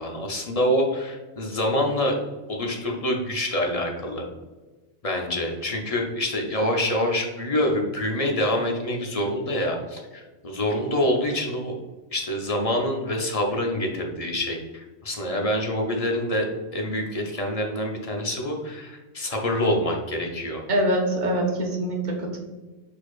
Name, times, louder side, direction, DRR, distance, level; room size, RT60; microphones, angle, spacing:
voice 1, 0.0-2.2 2.5-4.2 5.0-11.7 12.1-16.5 16.7-20.6, left 1 dB, 40° left, 1 dB, 0.7 m, -26 dB
voice 2, 20.7-22.4, right 1 dB, 50° right, 1 dB, 1.0 m, -24 dB
4.6 x 4.3 x 2.3 m, 1.2 s
omnidirectional pair, 1.1 m